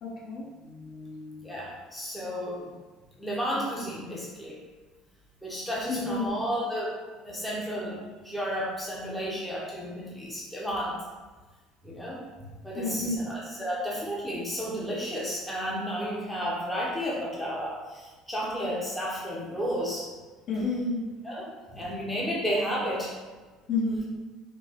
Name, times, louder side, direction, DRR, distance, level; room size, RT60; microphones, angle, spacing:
voice 1, 0.0-1.6 5.9-6.3 12.7-13.2 20.5-21.0 23.7-24.0, left 3 dB, 50° left, -5 dB, 1.4 m, -31 dB
voice 2, 1.4-2.7 3.2-4.6 5.4-6.9 7.2-11.0 11.8-12.2 12.6-20.1 21.2-23.1, equal, 5° left, -5 dB, 0.9 m, -32 dB
5.1 x 2.2 x 4.4 m, 1.3 s
cardioid pair, 135°, 0 cm